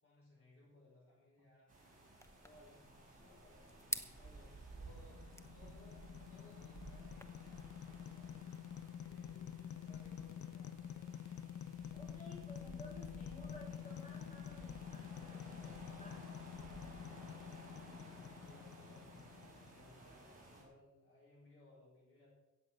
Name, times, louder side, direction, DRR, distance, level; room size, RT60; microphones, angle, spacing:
voice 1, 0.0-1.7 2.4-7.1 7.9-8.5 9.0-11.1 17.2-17.8 18.1-22.3, left 1 dB, 45° left, -5 dB, 5.6 m, -64 dB
sound 1, 1.7-20.6, right 2 dB, 25° right, 5.7 m, -56 dB
sound 2, 2.2-7.2, left 1 dB, 10° left, 0.9 m, -50 dB
sound 3, 4.7-19.9, left 9 dB, 70° left, 0.6 m, -49 dB
voice 2, 11.9-16.3, left 1 dB, 25° left, -4 dB, 6.1 m, -56 dB
17.0 x 7.9 x 6.4 m, 1.0 s
wide cardioid pair, 135°, 31 cm